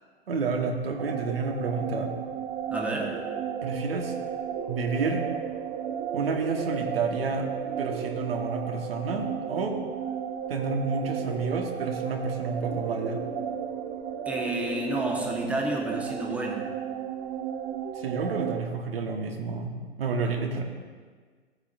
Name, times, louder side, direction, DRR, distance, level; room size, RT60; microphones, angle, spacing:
voice 1, 0.3-2.1 3.6-4.2 4.7-5.2 6.1-7.5 7.8-9.8 10.5-13.2 17.9-20.6, right 4 dB, 65° right, 2 dB, 1.4 m, -30 dB
sound 1, 1.0-18.6, right 8 dB, 35° right, 1.1 m, -33 dB
voice 2, 2.7-3.2 14.2-16.7, right 1 dB, 5° right, -2 dB, 1.3 m, -30 dB
15.5 x 8.6 x 2.6 m, 1.5 s
figure-of-eight pair, 105°, 32 cm